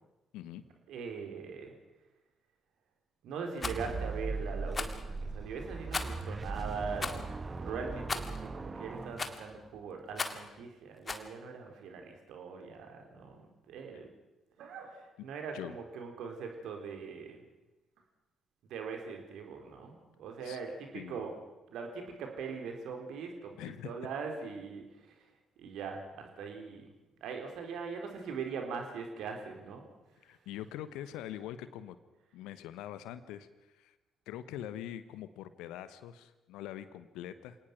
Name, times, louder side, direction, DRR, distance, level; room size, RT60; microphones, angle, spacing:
voice 1, 0.9-1.7 3.2-14.1 14.6-17.4 18.7-21.3 21.7-23.6 23.8-25.3 25.6-26.9 27.2-29.8, right 5 dB, 60° right, 3 dB, 4.1 m, -41 dB
Rattle, 3.6-3.8 4.7-5.0 5.9-6.3 7.0-7.2 8.1-8.4 9.2-9.5 10.1-10.5 11.1-11.3, left 4 dB, 35° left, 2.0 m, -36 dB
sound 1, 3.6-9.8, right 3 dB, 30° right, 1.7 m, -39 dB
voice 2, 20.9-21.3 23.6-23.9 30.2-32.0 32.3-33.5 33.7-33.9 34.3-37.6, left 11 dB, 65° left, 14 dB, 1.1 m, -43 dB
27.5 x 18.5 x 6.1 m, 1.0 s
figure-of-eight pair, 45°, 0 cm